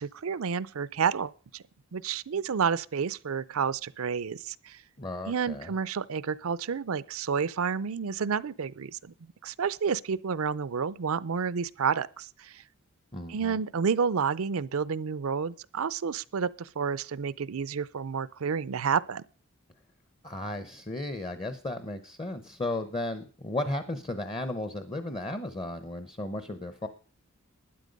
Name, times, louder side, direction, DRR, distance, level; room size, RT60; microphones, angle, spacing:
voice 1, 0.0-1.6 1.9-4.8 5.2-9.0 9.4-12.6 13.3-19.2, right 6 dB, 65° right, 0.5 m, -30 dB
voice 2, 5.0-5.7 13.1-13.6 20.2-26.9, left 2 dB, 25° left, 0.8 m, -35 dB
12.0 x 10.0 x 5.3 m
head